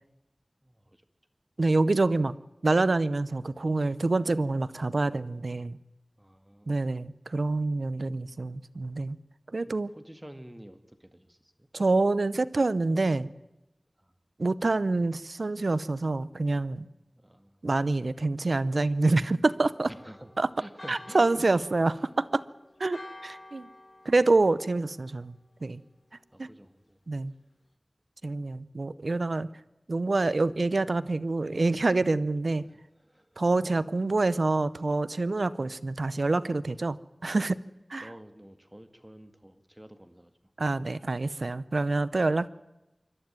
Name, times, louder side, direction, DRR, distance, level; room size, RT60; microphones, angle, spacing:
voice 1, 0.6-1.0 6.2-6.8 9.9-11.7 14.0-14.1 17.2-17.6 19.9-21.5 26.3-27.0 32.5-33.4 38.0-40.3, equal, 15° right, 9 dB, 2.0 m, -50 dB
voice 2, 1.6-2.3 2.6-5.8 6.7-9.2 9.5-9.9 11.7-13.3 14.4-16.9 17.6-19.9 20.4-20.5 20.9-22.4 22.8-23.7 24.0-25.4 25.6-25.8 26.4-26.5 27.1-27.3 28.2-29.5 29.9-32.6 33.4-37.0 37.2-37.6 37.9-38.1 40.6-42.5, right 3 dB, 75° right, 16 dB, 0.7 m, -26 dB
Church bell, 19.8-25.5, left 2 dB, 50° left, 1.6 m, -50 dB
26.5 x 12.0 x 9.0 m, 0.96 s
wide cardioid pair, 45°, 0 cm